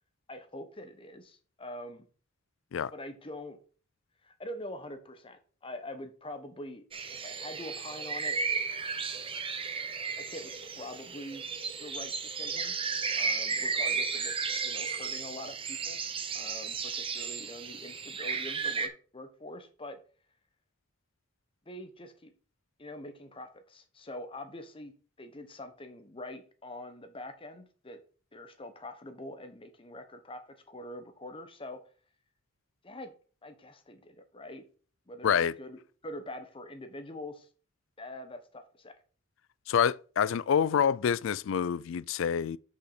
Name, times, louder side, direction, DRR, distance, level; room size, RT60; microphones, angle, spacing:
voice 1, 0.3-2.1 2.9-3.6 4.2-6.8 7.2-8.4 10.2-11.5 11.8-12.8 13.2-14.3 14.6-16.0 16.3-20.0 21.7-22.3 22.8-24.9 25.2-28.0 28.3-31.8 32.8-33.1 33.4-34.6 35.1-37.5 38.0-38.9, left 1 dB, 25° left, 1.1 m, -44 dB
sound 1, 6.9-18.9, right 5 dB, 25° right, 0.7 m, -34 dB
voice 2, 35.2-35.5 39.7-42.6, left 7 dB, 70° left, 0.4 m, -27 dB
6.3 x 5.4 x 5.0 m
head